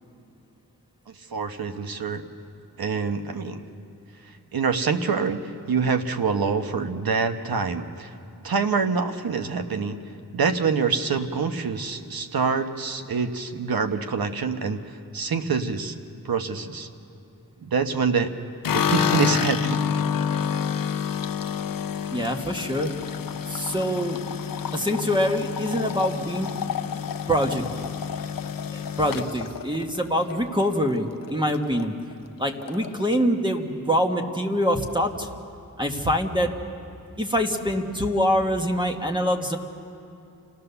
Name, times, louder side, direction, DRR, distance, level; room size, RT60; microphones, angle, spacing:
voice 1, 1.3-2.2 2.8-3.6 4.5-8.1 8.4-10.0 10.3-15.9 16.2-16.9 17.7-18.3 18.7-19.8, right 5 dB, 85° right, 7 dB, 1.1 m, -26 dB
sound 1, 18.6-30.9 31.2-31.8 32.1-32.2 32.5-33.2, left 8 dB, 70° left, 0.7 m, -29 dB
voice 2, 22.1-22.9 23.5-24.2 24.7-26.5 27.3-27.6 28.7-31.9 32.4-35.3 35.8-36.5 37.2-39.6, equal, 15° right, 2 dB, 1.5 m, -24 dB
29.0 x 16.0 x 6.9 m, 2.6 s
wide cardioid pair, 85°, 35 cm